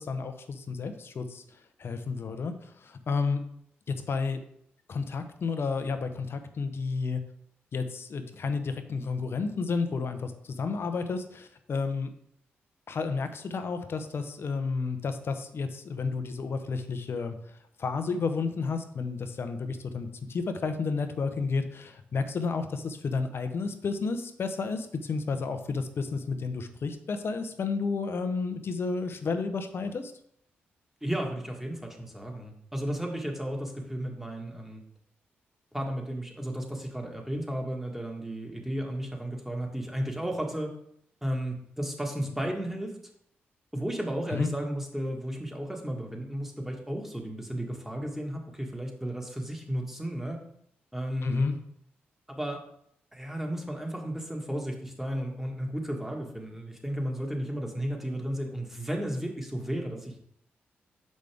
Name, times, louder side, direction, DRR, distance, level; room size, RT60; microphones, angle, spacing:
voice 1, 0.0-3.4 3.9-4.4 4.9-7.2 7.7-12.1 12.9-30.1 44.3-44.5 51.2-51.5, left 4 dB, 60° left, 8 dB, 0.8 m, -31 dB
voice 2, 31.0-34.8 35.7-40.7 41.2-42.9 43.7-50.4 50.9-51.5 52.3-52.6 53.1-60.2, equal, 5° right, 1 dB, 1.8 m, -33 dB
6.3 x 5.3 x 3.5 m, 0.70 s
supercardioid pair, 50°, 5 cm